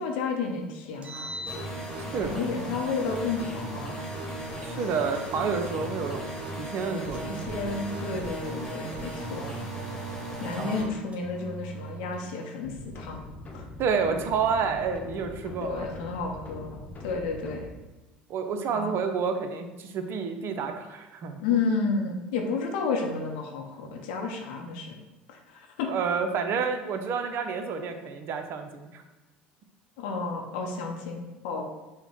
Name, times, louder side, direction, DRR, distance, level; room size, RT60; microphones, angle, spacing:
voice 1, 0.0-1.4 2.2-4.0 4.7-4.9 7.2-9.5 10.4-13.2 13.5-13.7 15.6-17.7 18.7-18.9 21.4-25.0 25.3-25.9 30.0-31.6, left 4 dB, 70° left, 2 dB, 0.6 m, -31 dB
Engine, 0.9-2.3 3.2-4.3 5.1-6.4 7.1-8.4 9.1-10.5 11.1-12.4, right 5 dB, 25° right, 1.0 m, -42 dB
sound 1, 1.5-10.8, right 1 dB, 10° left, 1.5 m, -36 dB
voice 2, 2.0-2.5 4.6-6.3 6.6-7.4 10.6-10.9 13.8-15.9 18.3-21.4 25.9-29.0, right 5 dB, 50° right, 6 dB, 0.6 m, -29 dB
sound 2, 12.6-17.7, left 1 dB, 30° left, 0.9 m, -42 dB
5.5 x 2.2 x 4.2 m, 1.1 s
hypercardioid pair, 70°, 5 cm